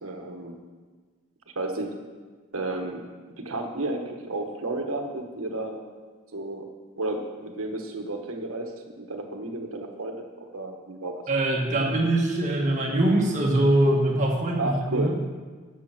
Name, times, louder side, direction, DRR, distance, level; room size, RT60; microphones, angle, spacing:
voice 1, 0.0-0.6 1.5-1.9 2.5-3.0 3.4-5.8 6.3-6.7 7.0-11.2 14.6-15.1, right 2 dB, 80° right, 4 dB, 1.4 m, -32 dB
voice 2, 11.3-15.1, right 1 dB, 35° right, -1 dB, 1.9 m, -23 dB
11.0 x 7.0 x 6.1 m, 1.5 s
head